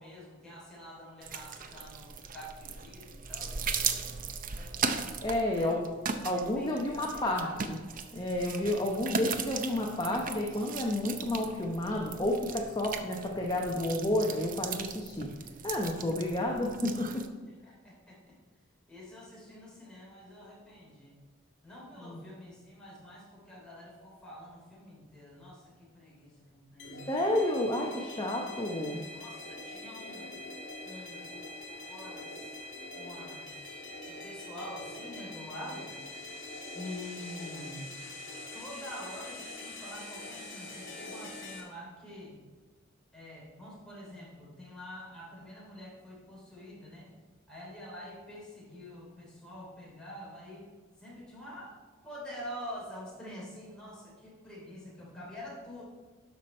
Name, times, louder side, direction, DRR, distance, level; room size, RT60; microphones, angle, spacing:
voice 1, 0.0-4.7 5.5-5.7 6.6-7.6 17.6-18.3 18.9-21.1 21.6-27.1 29.0-30.3 30.8-31.3 31.9-32.6 33.0-33.5 34.1-35.9 36.7-37.9 38.5-42.4 43.1-47.1 47.5-50.7 51.0-51.8 52.0-55.8, left 1 dB, 5° left, -6 dB, 3.2 m, -46 dB
sound 1, 1.2-17.3, right 5 dB, 40° right, 0.6 m, -38 dB
voice 2, 5.2-5.8 6.2-7.8 8.1-15.3 15.6-17.3 22.0-22.2 27.1-29.0, left 1 dB, 20° left, -1 dB, 0.8 m, -31 dB
sound 2, 26.8-41.6, left 2 dB, 65° left, 2.0 m, -44 dB
11.5 x 5.8 x 4.3 m, 1.4 s
head